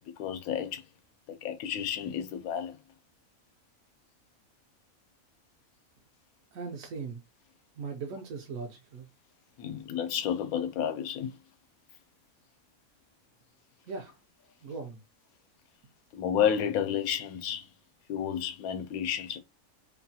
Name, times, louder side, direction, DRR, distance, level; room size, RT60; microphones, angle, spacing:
voice 1, 0.2-0.8 1.3-2.8 9.6-11.4 16.1-17.7 18.1-19.4, left 9 dB, 85° left, 1.0 m, -31 dB
voice 2, 6.5-7.2 7.8-9.1 13.8-14.2 14.6-15.0, right 4 dB, 75° right, 1.0 m, -39 dB
2.9 x 2.3 x 2.7 m
omnidirectional pair, 1.5 m